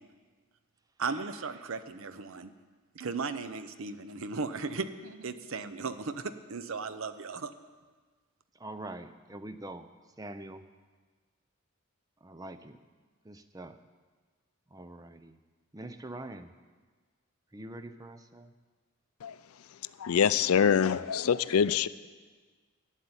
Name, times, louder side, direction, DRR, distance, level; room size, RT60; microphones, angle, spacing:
voice 1, 1.0-2.5 2.9-7.5, right 4 dB, 65° right, 11 dB, 0.7 m, -36 dB
voice 2, 8.5-9.9 10.2-10.7 12.2-12.8 13.2-13.8 14.7-15.4 15.7-16.5 17.5-18.5, right 1 dB, 15° right, 10 dB, 0.5 m, -44 dB
voice 3, 20.0-21.9, left 7 dB, 80° left, 16 dB, 0.4 m, -25 dB
12.0 x 7.3 x 9.7 m, 1.4 s
head